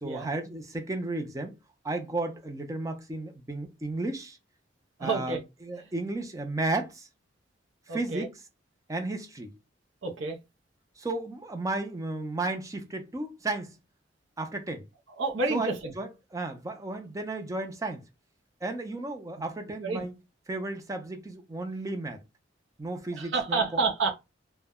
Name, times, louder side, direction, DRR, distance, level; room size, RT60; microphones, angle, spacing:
voice 1, 0.0-1.6 1.8-4.4 5.0-7.1 7.9-8.3 8.9-9.5 11.0-13.8 14.4-14.8 15.5-18.0 18.6-20.1 20.5-22.2 22.8-23.8, right 2 dB, 15° right, 0.4 m, -33 dB
voice 2, 5.0-5.4 7.9-8.3 10.0-10.4 15.2-15.9 19.8-20.0 23.2-24.1, right 4 dB, 70° right, 0.6 m, -29 dB
2.1 x 2.0 x 3.5 m
head